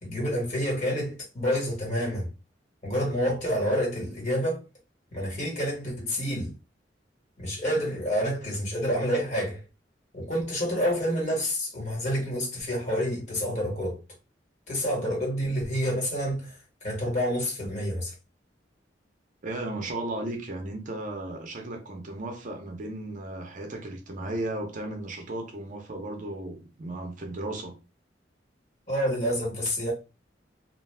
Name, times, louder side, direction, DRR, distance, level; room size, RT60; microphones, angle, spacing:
voice 1, 0.0-2.3 2.8-4.6 5.1-6.5 7.4-9.6 10.1-14.0 14.7-16.6 16.8-18.1 28.9-29.9, equal, 40° left, 1.4 m, -28 dB
voice 2, 19.4-27.8, right 2 dB, 45° right, 0.6 m, -35 dB
2.4 x 2.3 x 3.3 m
head